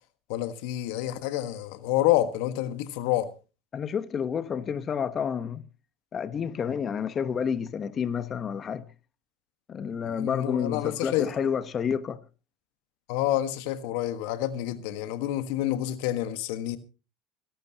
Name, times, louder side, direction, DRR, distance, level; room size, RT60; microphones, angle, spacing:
voice 1, 0.3-3.3 10.2-11.3 13.1-16.8, left 13 dB, 75° left, 1.4 m, -28 dB
voice 2, 3.7-5.6 6.1-8.8 9.7-12.2, left 7 dB, 35° left, 1.0 m, -29 dB
26.5 x 11.5 x 2.8 m
supercardioid pair, 95°, 0 cm